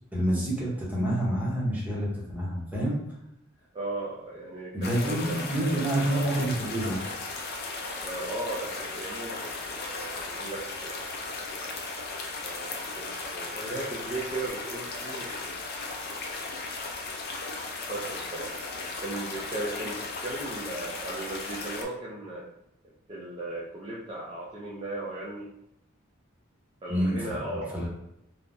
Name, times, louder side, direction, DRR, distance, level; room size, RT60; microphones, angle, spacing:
voice 1, 0.1-3.0 4.7-7.0 26.9-27.9, right 1 dB, 10° right, -5 dB, 0.8 m, -28 dB
voice 2, 3.7-5.9 8.0-11.1 12.4-15.5 17.7-22.5 23.1-25.5 26.8-27.9, right 2 dB, 25° right, -6 dB, 0.4 m, -37 dB
sound 1, 4.8-21.8, left 3 dB, 50° left, 0.4 m, -36 dB
3.3 x 2.0 x 2.5 m, 0.82 s
head